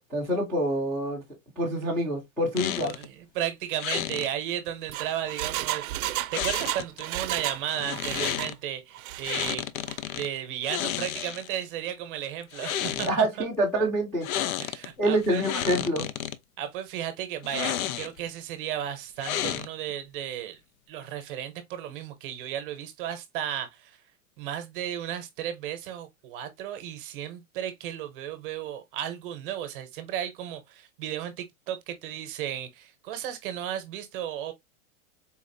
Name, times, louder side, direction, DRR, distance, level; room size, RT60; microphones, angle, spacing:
voice 1, 0.1-1.2 1.6-2.9 13.0-14.3 15.0-16.1, right 1 dB, 5° left, 0.5 m, -26 dB
sound 1, 2.6-3.1 3.8-4.3 6.3-7.0 7.7-8.5 9.2-10.3 10.6-11.6 12.4-13.2 14.2-14.9 15.2-16.4 17.4-18.3 19.2-19.9, left 11 dB, 80° left, 0.6 m, -32 dB
voice 2, 2.8-9.6 10.2-13.5 14.6-15.5 16.6-20.6 20.9-24.0 24.4-34.5, right 11 dB, 40° right, 0.7 m, -34 dB
Engine, 4.7-7.6 7.9-8.5 8.9-9.5 9.9-10.0, right 14 dB, 80° right, 0.5 m, -32 dB
4.1 x 2.4 x 2.6 m
supercardioid pair, 160°, 42 cm